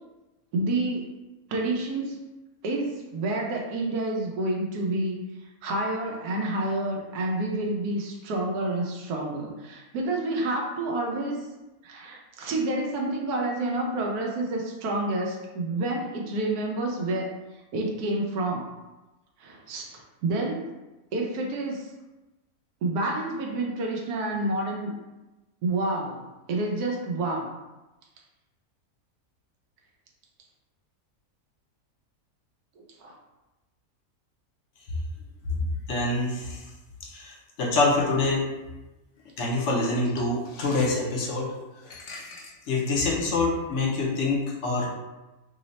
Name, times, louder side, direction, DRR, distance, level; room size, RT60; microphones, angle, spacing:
voice 1, 0.5-1.1 1.5-2.2 2.6-5.2 5.6-11.5 11.8-17.3 17.7-18.7 19.4-20.7 21.1-21.9 22.8-24.9 25.6-26.2 26.5-27.5 32.8-33.1, right 2 dB, 85° right, 0 dB, 1.1 m, -29 dB
voice 2, 35.9-36.6 37.1-38.5 39.4-41.5 41.8-44.9, left 2 dB, 60° left, -3 dB, 0.9 m, -26 dB
3.1 x 2.1 x 3.9 m, 1.1 s
omnidirectional pair, 1.6 m